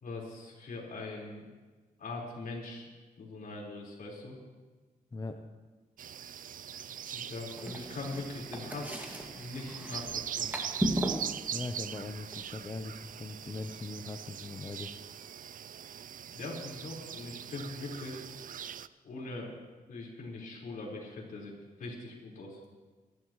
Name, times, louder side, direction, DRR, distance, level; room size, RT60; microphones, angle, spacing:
voice 1, 0.0-1.5 2.0-2.9 3.2-4.3 7.1-9.0 9.4-10.5 16.3-18.2 19.0-19.5 19.9-22.6, left 2 dB, 70° left, -4 dB, 4.6 m, -41 dB
sound 1, 6.0-18.9, right 9 dB, 65° right, 0.4 m, -41 dB
sound 2, 7.5-13.7, equal, 10° right, 2.1 m, -38 dB
voice 2, 11.5-15.0, left 3 dB, 25° left, 5 dB, 0.7 m, -40 dB
26.0 x 12.0 x 3.1 m, 1.3 s
cardioid pair, 105°, 15 cm